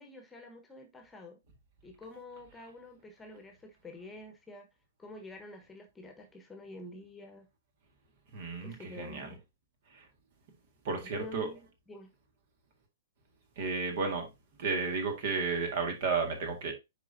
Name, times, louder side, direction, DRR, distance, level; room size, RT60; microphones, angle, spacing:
voice 1, 0.0-1.4 1.8-4.7 5.0-7.5 8.6-9.4 11.0-11.6 11.9-12.1, left 2 dB, 10° left, 1.3 m, -48 dB
voice 2, 8.3-9.3 9.9-10.0 10.8-11.5 13.6-14.3 14.6-16.7, right 4 dB, 45° right, 1.9 m, -33 dB
10.0 x 4.1 x 2.7 m
figure-of-eight pair, 110°, 0 cm